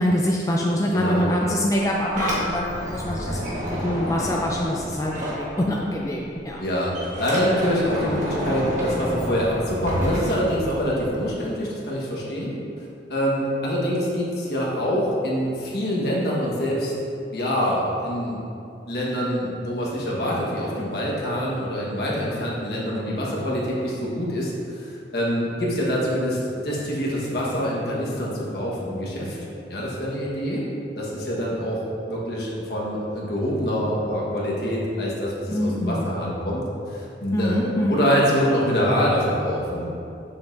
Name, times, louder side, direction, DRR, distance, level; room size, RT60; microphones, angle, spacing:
voice 1, 0.0-3.4 3.7-6.6 35.5-36.1 37.3-38.0, equal, 20° left, -2 dB, 0.4 m, -24 dB
Sliding door, 1.7-6.0 6.3-11.1, equal, 45° right, 1.4 m, -30 dB
voice 2, 6.6-12.5 13.1-16.9 17.3-18.4 18.9-26.4 26.6-29.4 29.7-30.6 30.9-31.8 32.1-39.9, equal, 65° left, -5 dB, 1.4 m, -25 dB
7.1 x 6.8 x 2.6 m, 2.6 s
head